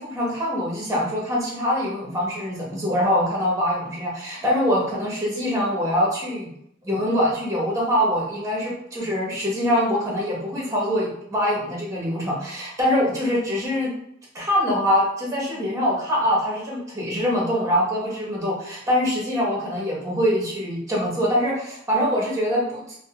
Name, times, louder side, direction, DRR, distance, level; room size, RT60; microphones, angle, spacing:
voice 1, 0.0-6.5 6.8-13.9 14.3-23.0, equal, 15° right, -5 dB, 0.8 m, -24 dB
2.5 x 2.1 x 2.8 m, 0.73 s
head